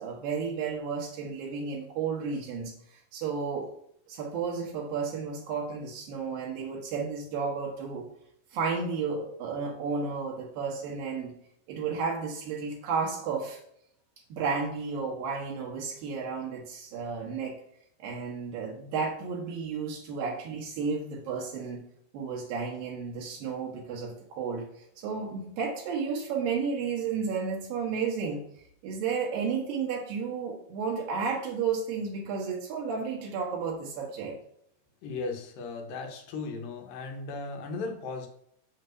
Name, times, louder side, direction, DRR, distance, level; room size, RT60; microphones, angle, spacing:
voice 1, 0.0-2.7 3.1-3.7 4.1-8.1 8.5-11.3 11.7-13.6 14.3-17.5 18.0-21.8 22.1-28.4 28.8-34.4, right 5 dB, 85° right, -1 dB, 2.8 m, -32 dB
voice 2, 35.0-38.3, left 3 dB, 85° left, 2 dB, 2.8 m, -36 dB
7.4 x 6.6 x 2.6 m, 0.70 s
omnidirectional pair, 3.9 m